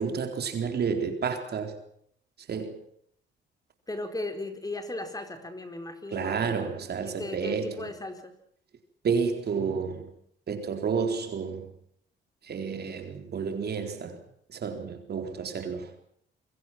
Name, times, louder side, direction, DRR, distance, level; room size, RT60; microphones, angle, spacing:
voice 1, 0.0-1.8 2.5-2.8 6.1-7.9 9.0-10.1 10.5-11.7 12.5-14.2 14.5-15.9, right 6 dB, 55° right, 4.1 m, -30 dB
voice 2, 3.9-6.8 7.0-8.3, left 2 dB, 20° left, 4.6 m, -37 dB
26.5 x 22.5 x 6.1 m
cardioid pair, 90°, 20 cm